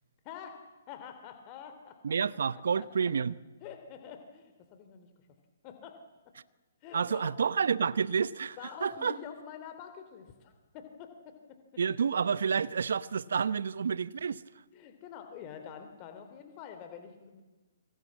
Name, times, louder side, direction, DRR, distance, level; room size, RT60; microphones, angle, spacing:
voice 1, 0.2-0.6 0.9-2.2 2.8-3.1 3.6-5.1 5.6-6.0 6.8-7.3 8.6-11.3 14.7-17.4, left 8 dB, 30° left, 3.1 m, -46 dB
voice 2, 2.0-3.3 6.9-9.2 11.8-14.4, right 6 dB, 65° right, 1.0 m, -29 dB
28.0 x 24.0 x 7.5 m
figure-of-eight pair, 130°, 0 cm